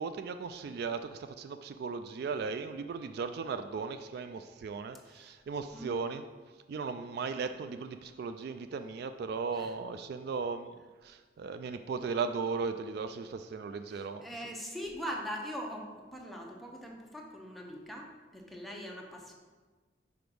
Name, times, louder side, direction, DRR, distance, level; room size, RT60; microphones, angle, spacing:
voice 1, 0.0-6.2 6.7-14.3, right 5 dB, 55° right, 9 dB, 0.3 m, -37 dB
voice 2, 5.1-5.4 5.7-5.9 9.5-9.7 13.9-19.3, equal, ahead, -1 dB, 0.8 m, -42 dB
5.2 x 4.9 x 6.1 m, 1.4 s
head